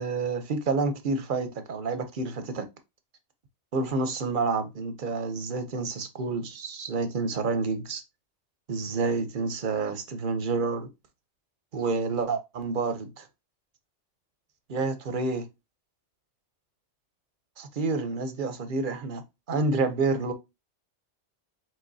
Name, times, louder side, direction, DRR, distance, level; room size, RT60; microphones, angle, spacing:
voice 1, 0.0-2.7 3.7-8.0 8.7-10.9 11.7-13.3 14.7-15.5 17.6-19.2 19.5-20.3, right 3 dB, 50° right, 0.8 m, -29 dB
4.9 x 3.7 x 2.7 m
omnidirectional pair, 1.2 m